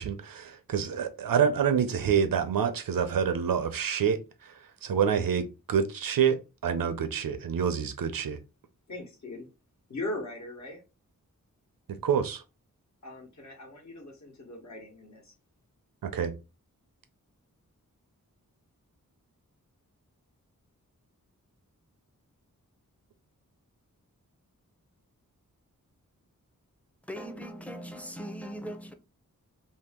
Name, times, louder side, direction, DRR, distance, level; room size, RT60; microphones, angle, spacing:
voice 1, 0.0-4.5 4.8-8.4 11.9-12.4 16.0-16.3, right 7 dB, 85° right, 0.6 m, -27 dB
voice 2, 8.9-9.5 9.9-10.8 13.0-15.3, left 2 dB, 55° left, 1.2 m, -39 dB
voice 3, 27.1-28.9, equal, 5° left, 0.6 m, -39 dB
2.8 x 2.7 x 3.5 m
wide cardioid pair, 75°, 33 cm